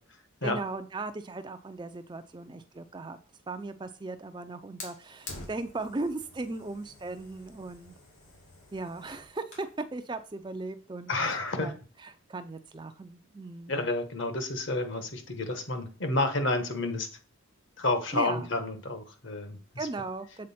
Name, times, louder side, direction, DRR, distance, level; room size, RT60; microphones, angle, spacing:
voice 1, 0.4-3.2 3.5-7.9 8.7-13.7 18.1-18.5 19.8-20.5, right 3 dB, 20° right, 9 dB, 0.4 m, -37 dB
Fire, 4.8-9.8, left 2 dB, 85° left, 2.4 m, -48 dB
voice 2, 11.1-11.7 13.7-17.1 17.8-19.6, left 2 dB, 55° left, 7 dB, 1.1 m, -30 dB
7.6 x 4.2 x 4.2 m, 0.37 s
head